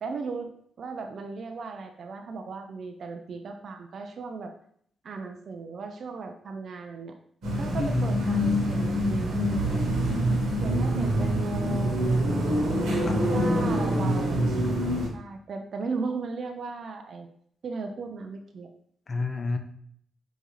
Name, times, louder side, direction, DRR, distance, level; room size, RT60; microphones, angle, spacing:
voice 1, 0.0-4.5 5.0-7.2 7.6-9.8 10.6-12.4 13.1-17.3 17.6-18.7, right 4 dB, 65° right, 5 dB, 0.4 m, -37 dB
sound 1, 7.4-15.1, equal, 80° right, 1.2 m, -25 dB
voice 2, 7.8-8.1 13.0-14.7 19.1-19.6, left 3 dB, 50° left, 7 dB, 0.6 m, -30 dB
4.8 x 2.6 x 3.1 m, 0.64 s
supercardioid pair, 45°, 0 cm